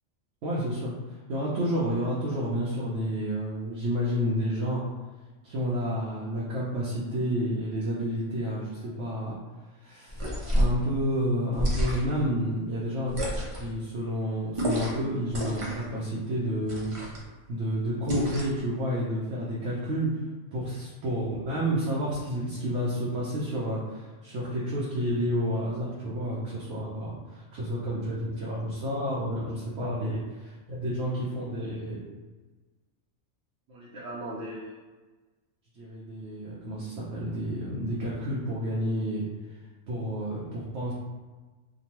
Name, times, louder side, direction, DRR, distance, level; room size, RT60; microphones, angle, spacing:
voice 1, 0.4-4.8 5.4-9.4 9.8-13.1 13.5-16.9 17.5-20.1 20.5-30.2 30.7-32.0 33.7-34.6 35.7-39.2 39.9-40.9, equal, 70° right, -6 dB, 0.9 m, -30 dB
sound 1, 10.1-10.8 11.5-12.2 13.1-13.7 14.5-15.0 15.3-15.9 16.7-17.2 18.1-18.6, equal, 40° right, 0.5 m, -29 dB
2.8 x 2.2 x 2.9 m, 1.3 s
omnidirectional pair, 1.3 m